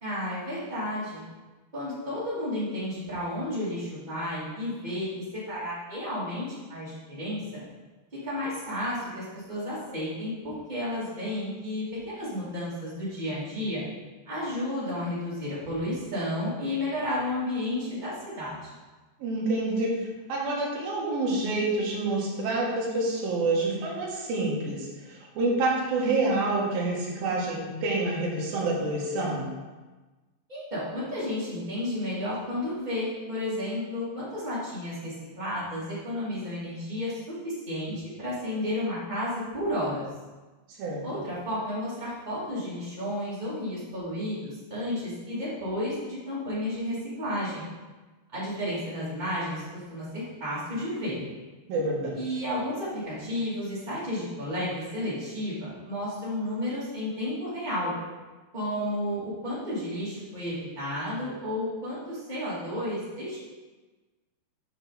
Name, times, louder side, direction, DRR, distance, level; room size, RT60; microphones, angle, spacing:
voice 1, 0.0-1.2 1.7-7.4 8.2-13.8 14.3-18.7 30.5-40.0 41.0-47.7 48.3-49.6 49.9-51.2 52.1-57.9 58.5-63.4, left 1 dB, 15° right, -9 dB, 2.0 m, -32 dB
voice 2, 19.2-29.5 40.8-41.2 51.7-52.2, right 2 dB, 60° right, -4 dB, 3.0 m, -28 dB
9.4 x 5.7 x 4.2 m, 1.2 s
omnidirectional pair, 5.3 m